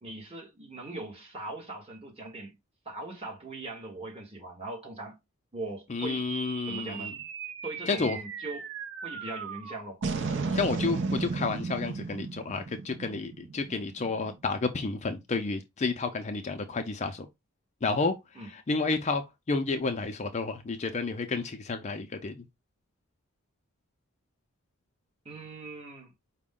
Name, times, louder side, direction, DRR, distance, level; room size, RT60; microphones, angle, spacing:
voice 1, 0.0-2.5 2.8-5.2 5.5-6.3 6.7-7.1 7.6-8.7 9.0-10.0 10.4-10.5 18.3-18.5 25.2-26.1, right 2 dB, 30° right, 1.2 m, -40 dB
voice 2, 5.9-7.1 7.9-8.2 10.5-17.3 17.8-18.2 18.5-22.4, left 4 dB, 30° left, 0.4 m, -31 dB
sound 1, 6.0-14.6, right 4 dB, 55° right, 0.6 m, -35 dB
5.0 x 2.1 x 3.6 m
head